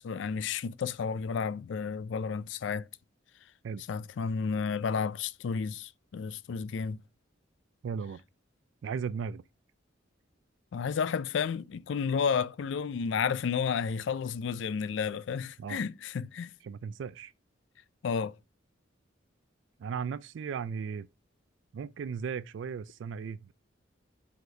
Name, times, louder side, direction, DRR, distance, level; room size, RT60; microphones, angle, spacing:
voice 1, 0.0-2.9 3.9-7.0 10.7-16.5 18.0-18.3, left 6 dB, 70° left, 0.4 m, -32 dB
voice 2, 7.8-8.2 8.8-9.4 15.6-15.8 16.6-17.3 19.8-21.1 21.7-23.5, right 6 dB, 70° right, 0.3 m, -36 dB
5.3 x 4.0 x 5.1 m
head